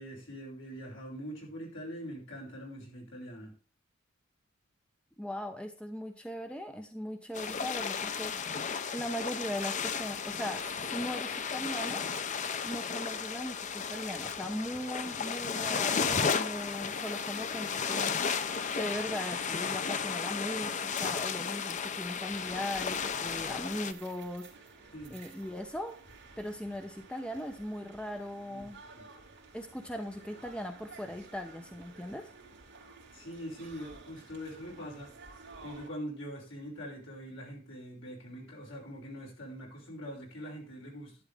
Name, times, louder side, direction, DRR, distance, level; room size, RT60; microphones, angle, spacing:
voice 1, 0.0-3.5 24.9-25.2 28.5-28.7 28.9-29.1 33.1-35.1 35.6-41.2, equal, 65° left, -2 dB, 6.1 m, -43 dB
voice 2, 5.2-8.6 8.9-12.1 12.6-18.4 18.7-26.0 26.4-28.8 29.5-32.3, equal, 5° left, 5 dB, 0.8 m, -39 dB
sound 1, 7.3-23.9, left 6 dB, 35° left, 0.6 m, -34 dB
sound 2, 22.3-35.9, right 4 dB, 55° right, 3.2 m, -53 dB
12.0 x 10.5 x 3.6 m, 0.37 s
head